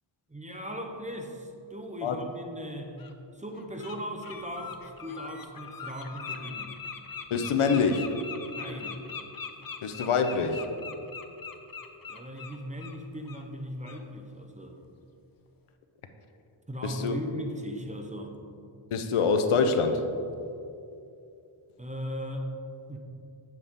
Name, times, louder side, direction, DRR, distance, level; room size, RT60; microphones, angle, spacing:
voice 1, 0.3-3.1 3.3-6.8 8.5-9.1 12.1-14.8 16.7-18.4 21.8-22.5 22.9-23.0, equal, 15° right, 3 dB, 0.8 m, -38 dB
Bird, 3.0-3.1 3.6-4.0 4.2-13.0 13.3-13.4 13.8-14.0, left 6 dB, 45° left, 0.7 m, -41 dB
voice 2, 7.3-8.2 9.8-10.7 16.8-17.1 18.9-20.0, left 5 dB, 85° left, 7 dB, 0.8 m, -25 dB
8.1 x 7.6 x 3.7 m, 2.6 s
wide cardioid pair, 75°, 49 cm